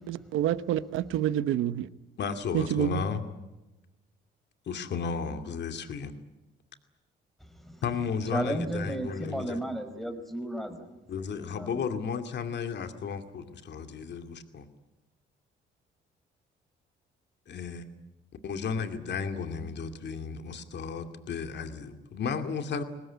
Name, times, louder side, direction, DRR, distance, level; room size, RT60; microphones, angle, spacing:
voice 1, 0.1-1.9 2.5-3.0, right 11 dB, 90° right, 14 dB, 1.0 m, -28 dB
voice 2, 2.2-3.2 4.7-6.1 7.8-9.6 11.1-14.7 17.5-17.8 18.4-22.8, left 6 dB, 60° left, 7 dB, 2.4 m, -34 dB
voice 3, 7.4-7.8 8.3-11.0 11.4-11.9, right 1 dB, ahead, 8 dB, 4.8 m, -34 dB
23.5 x 19.5 x 9.3 m, 1.0 s
cardioid pair, 90°, 20 cm